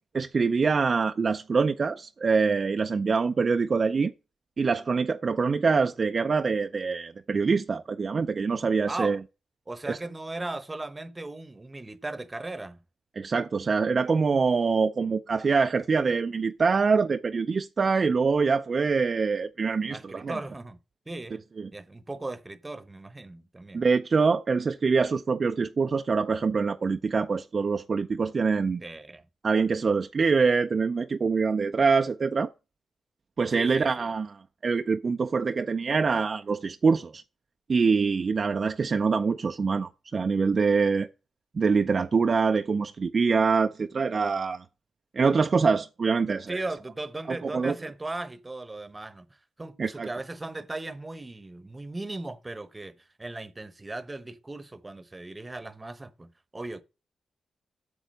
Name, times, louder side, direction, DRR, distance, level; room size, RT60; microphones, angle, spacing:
voice 1, 0.1-4.1 4.6-9.2 9.9-10.0 13.2-20.3 21.6-21.7 23.7-28.8 29.4-32.5 33.4-37.2 37.7-41.1 41.5-44.6 45.1-46.7 47.3-47.7 49.8-50.1, right 5 dB, 40° right, 0.5 m, -25 dB
voice 2, 8.9-9.2 9.7-12.8 19.9-20.8 21.1-21.4 21.7-23.9 28.8-29.2 33.5-34.1 46.5-56.8, right 2 dB, 20° right, 1.0 m, -37 dB
8.4 x 7.0 x 6.4 m
cardioid pair, 110°, 0 cm